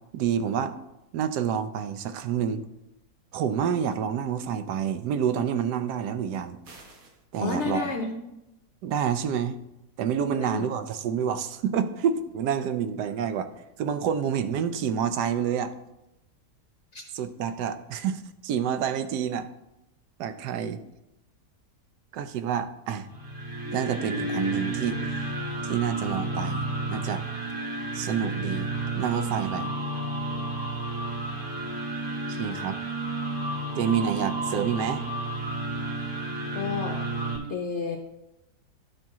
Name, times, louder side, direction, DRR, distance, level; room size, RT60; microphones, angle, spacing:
voice 1, 0.1-0.8 1.1-2.6 3.3-6.6 7.3-7.9 8.8-9.6 10.0-13.5 13.8-15.7 17.1-19.5 20.2-20.8 22.1-23.1 23.7-25.0 25.6-27.2 27.9-29.7 32.3-32.8 33.8-35.0, right 8 dB, 80° right, 10 dB, 1.2 m, -28 dB
sound 1, 6.6-7.2, right 3 dB, 60° right, 1.5 m, -49 dB
voice 2, 7.4-8.3 10.3-10.7 16.9-17.0 36.5-37.0 37.5-38.0, left 4 dB, 60° left, 3 dB, 0.7 m, -31 dB
sound 2, 23.1-37.4, right 2 dB, 15° right, 1.4 m, -31 dB
11.5 x 4.5 x 3.6 m, 0.91 s
omnidirectional pair, 1.8 m